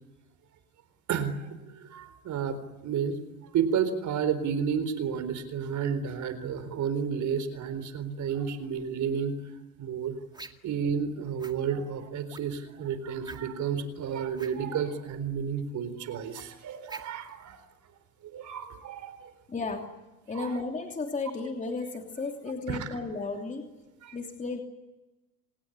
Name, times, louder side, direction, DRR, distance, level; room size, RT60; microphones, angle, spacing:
voice 1, 1.1-3.2 3.4-9.5 9.8-10.2 10.6-17.6 18.2-19.3 20.3-20.5 22.7-22.9 24.0-24.2, right 7 dB, 40° right, 12 dB, 4.1 m, -31 dB
sound 1, 10.3-10.7 11.4-11.6 12.3-12.6 13.2-13.7 14.3-14.6 16.3-17.3, right 3 dB, 10° right, 2.0 m, -45 dB
voice 2, 19.5-19.9 20.3-23.7 24.1-24.6, left 3 dB, 15° left, 4 dB, 3.1 m, -34 dB
28.0 x 19.0 x 10.0 m, 1.1 s
hypercardioid pair, 85°, 45 cm